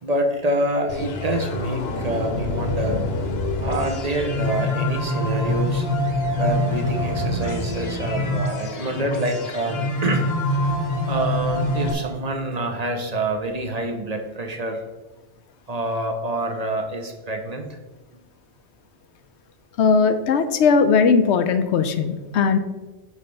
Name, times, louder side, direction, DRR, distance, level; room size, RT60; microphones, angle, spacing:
voice 1, 0.0-3.1 3.6-5.9 6.3-10.8 11.1-14.8 15.7-17.8, right 1 dB, 40° right, 5 dB, 0.8 m, -26 dB
sound 1, 0.9-11.9, left 1 dB, 65° left, 1.1 m, -25 dB
voice 2, 19.8-22.6, left 5 dB, 85° left, 9 dB, 0.9 m, -18 dB
8.3 x 3.2 x 5.4 m, 1.1 s
omnidirectional pair, 1.1 m